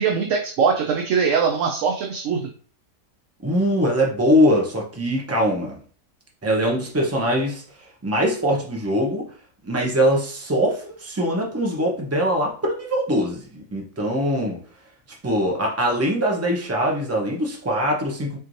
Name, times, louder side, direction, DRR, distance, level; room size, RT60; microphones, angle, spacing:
voice 1, 0.0-2.5, right 6 dB, 65° right, 1 dB, 0.9 m, -21 dB
voice 2, 3.4-5.8 6.4-7.6 8.0-9.3 9.6-14.6 15.2-18.4, equal, 20° right, 0 dB, 0.4 m, -22 dB
4.3 x 3.1 x 2.6 m, 0.43 s
omnidirectional pair, 1.6 m